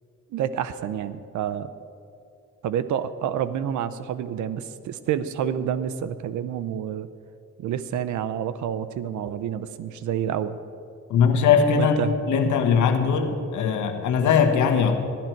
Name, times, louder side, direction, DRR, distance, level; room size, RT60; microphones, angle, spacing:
voice 1, 0.3-1.7 2.6-7.1 7.6-10.6 11.7-12.1, right 9 dB, 75° right, 13 dB, 0.7 m, -28 dB
voice 2, 11.1-12.0 12.3-15.0, left 6 dB, 75° left, 6 dB, 1.4 m, -20 dB
15.0 x 11.5 x 4.6 m, 2.5 s
cardioid pair, 90°, 30 cm